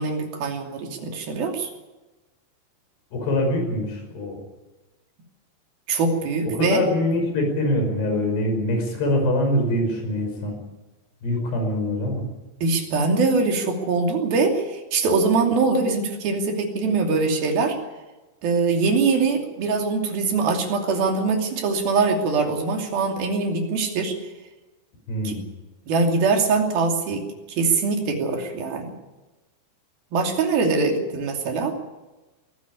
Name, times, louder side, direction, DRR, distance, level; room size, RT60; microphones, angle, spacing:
voice 1, 0.0-1.7 5.9-6.8 12.6-17.8 18.4-24.2 25.2-25.4 25.9-27.2 27.5-28.9 30.1-31.8, right 4 dB, 50° right, 3 dB, 4.3 m, -23 dB
voice 2, 3.1-4.4 6.5-10.6 11.2-12.2 25.1-25.4, left 1 dB, 55° left, 3 dB, 7.1 m, -24 dB
21.5 x 14.5 x 9.8 m, 1.1 s
omnidirectional pair, 5.8 m